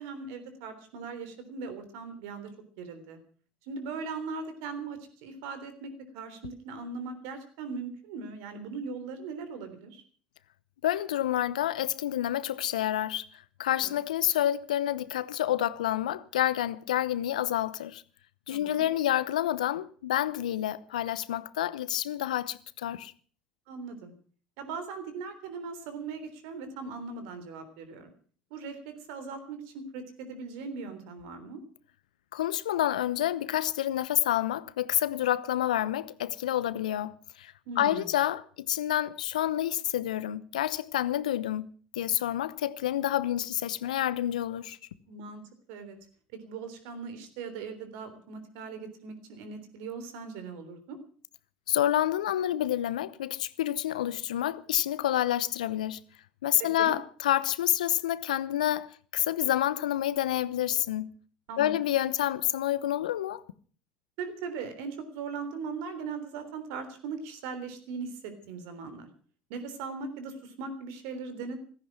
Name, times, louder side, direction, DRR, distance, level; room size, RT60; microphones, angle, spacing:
voice 1, 0.0-2.5 2.8-3.2 3.6-10.0 13.8-14.0 18.5-18.9 23.7-24.1 24.6-28.1 28.5-31.6 37.7-38.1 45.1-45.4 45.7-46.0 46.4-51.0 56.6-57.0 61.5-61.7 64.2-69.1 69.5-71.6, right 4 dB, 70° right, 3.5 m, -39 dB
voice 2, 10.8-13.3 13.6-18.0 18.5-23.1 32.3-41.7 42.0-44.8 51.7-56.0 56.4-58.9 59.1-61.1 61.6-63.4, left 12 dB, 80° left, 0.8 m, -28 dB
16.0 x 14.0 x 6.1 m
hypercardioid pair, 65°, 4 cm